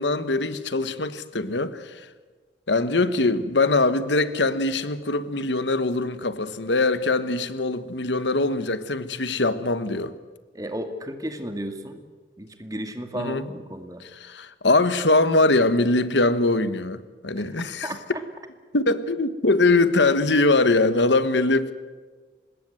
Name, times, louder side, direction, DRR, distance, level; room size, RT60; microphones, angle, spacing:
voice 1, 0.0-2.1 2.7-10.1 13.2-13.4 14.2-17.9 18.7-21.7, left 2 dB, 90° left, 1.4 m, -22 dB
voice 2, 10.5-12.0 12.4-14.0 17.4-17.5 17.8-18.2, right 1 dB, 20° right, 2.2 m, -33 dB
25.5 x 20.5 x 7.9 m
head